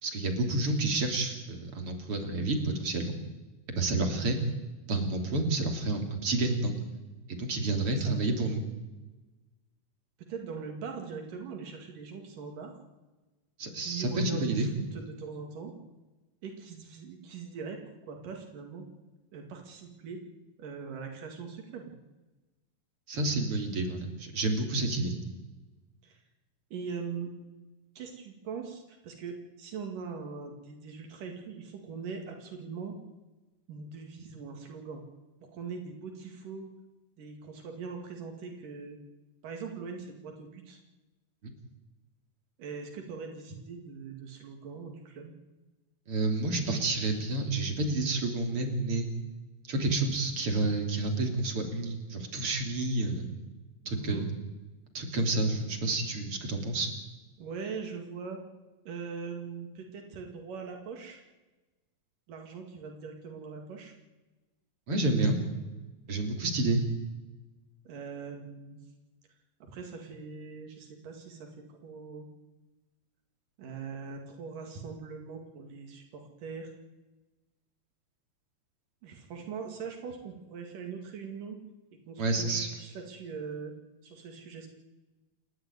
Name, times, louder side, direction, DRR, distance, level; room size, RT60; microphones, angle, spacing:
voice 1, 0.0-3.2 3.7-4.4 4.9-6.8 7.3-8.6 13.6-14.7 23.1-25.1 41.4-41.5 46.1-49.1 49.7-53.3 53.9-54.3 54.9-56.9 64.9-65.4 66.1-66.9 82.2-82.7, right 2 dB, 45° right, 4 dB, 3.8 m, -29 dB
voice 2, 7.9-8.2 10.3-12.7 13.8-15.7 16.4-18.8 19.3-20.2 20.6-21.9 26.0-26.2 26.7-27.3 28.0-32.9 33.7-35.0 35.5-36.7 37.2-39.0 39.4-40.8 42.6-45.3 53.9-54.3 57.4-58.4 58.9-61.2 62.3-63.9 67.9-68.8 69.6-72.3 73.6-76.7 79.0-81.6 82.1-83.7 84.0-84.7, right 5 dB, 80° right, 2 dB, 3.9 m, -41 dB
29.0 x 12.0 x 9.5 m, 1.1 s
omnidirectional pair, 3.8 m